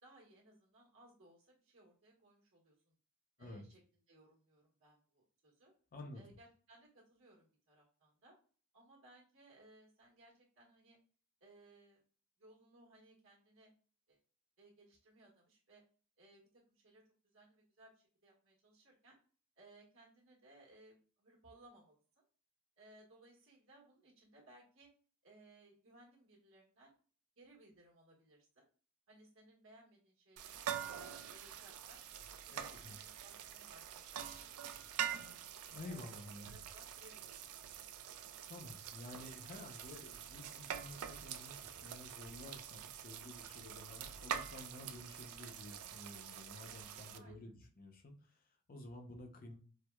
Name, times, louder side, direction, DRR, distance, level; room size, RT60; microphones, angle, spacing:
voice 1, 0.0-2.9 3.4-3.8 4.1-5.7 6.1-8.3 8.7-11.0 11.4-12.0 12.4-13.7 14.1-14.2 14.6-15.8 16.2-16.4 16.7-17.0 17.3-19.2 19.6-22.2 22.8-24.9 25.2-26.9 27.4-28.7 29.1-32.0 32.5-35.3 35.8-37.3 47.1-47.5, right 1 dB, 65° right, -2 dB, 1.2 m, -63 dB
voice 2, 5.9-6.2 32.5-33.0 35.7-36.5 38.4-49.6, left 2 dB, 40° left, 3 dB, 0.6 m, -52 dB
sound 1, 30.4-47.2, right 9 dB, 90° right, 0.4 m, -46 dB
4.5 x 2.0 x 2.3 m, 0.40 s
head